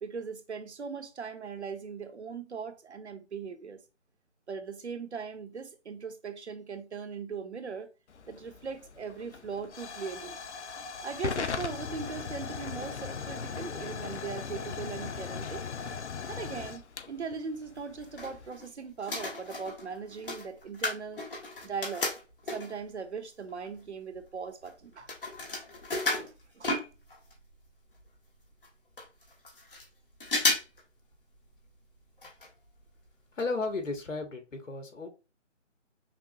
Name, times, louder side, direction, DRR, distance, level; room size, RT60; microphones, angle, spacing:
voice 1, 0.0-3.8 4.5-7.9 8.3-10.4 11.0-15.7 16.3-21.2 21.6-22.1 22.5-25.1 26.2-26.7, right 5 dB, 60° right, 0.8 m, -39 dB
Hiss / Fire / Tick, 8.1-18.5, left 6 dB, 65° left, 0.5 m, -39 dB
sound 1, 17.8-18.7 19.0-22.9 23.5-23.6 23.8-27.4 27.7-27.8 27.9-28.0 28.6-28.7 29.0-29.9 30.2-30.8 31.1-31.2 32.2-32.5 32.8-32.9 33.4-33.5 33.8-33.9, left 2 dB, 45° left, 1.4 m, -33 dB
voice 2, 33.3-35.1, left 3 dB, 80° left, 1.3 m, -34 dB
5.8 x 2.1 x 2.7 m
figure-of-eight pair, 170°, 37 cm